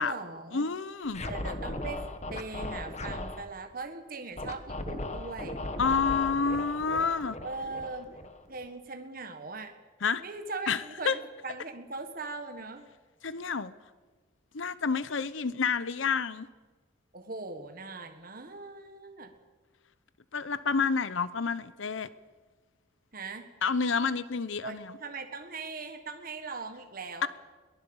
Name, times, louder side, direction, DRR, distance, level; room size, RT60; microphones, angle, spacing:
voice 1, 0.0-0.7 1.2-2.0 2.3-5.7 7.4-8.1 8.5-9.7 10.2-12.9 17.1-19.3 23.1-23.5 24.6-27.3, right 3 dB, 45° right, 5 dB, 1.6 m, -40 dB
voice 2, 0.5-1.2 5.8-7.4 10.0-10.2 10.7-11.2 13.2-13.7 14.5-16.5 20.3-22.1 23.6-24.8 27.2-27.3, left 5 dB, 75° left, 15 dB, 0.8 m, -29 dB
Scratching (performance technique), 1.1-3.4 4.4-8.7, left 2 dB, 35° left, 1.4 m, -37 dB
22.0 x 19.0 x 7.2 m, 1.3 s
head